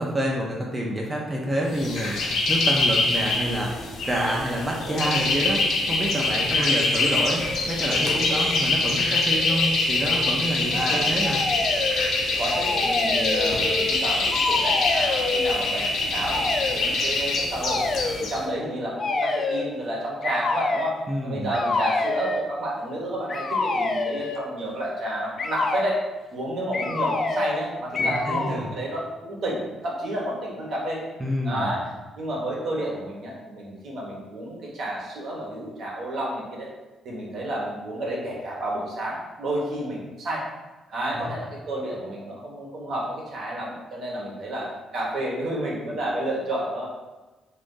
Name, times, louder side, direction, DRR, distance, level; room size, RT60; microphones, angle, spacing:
voice 1, 0.0-3.8 4.0-11.4 21.1-21.5 28.0-28.7 31.2-31.8, right 1 dB, 20° right, -2 dB, 0.5 m, -28 dB
sound 1, 1.7-18.4, left 2 dB, 75° left, 0.7 m, -24 dB
voice 2, 6.4-6.8 10.7-11.1 12.4-17.8 18.3-26.0 26.3-31.0 31.4-31.8 32.1-36.7 37.0-40.4 40.9-46.9, right 1 dB, 65° right, -3 dB, 1.0 m, -30 dB
sound 2, 11.2-12.1 12.5-14.0 14.3-15.6 16.3-16.8 17.6-18.3 19.0-19.7 20.2-21.0 21.5-22.5 23.3-24.5 25.4-25.9 26.7-27.6 27.9-28.6, left 3 dB, 40° left, 0.3 m, -27 dB
2.6 x 2.5 x 3.7 m, 1.1 s
cardioid pair, 90°, 0 cm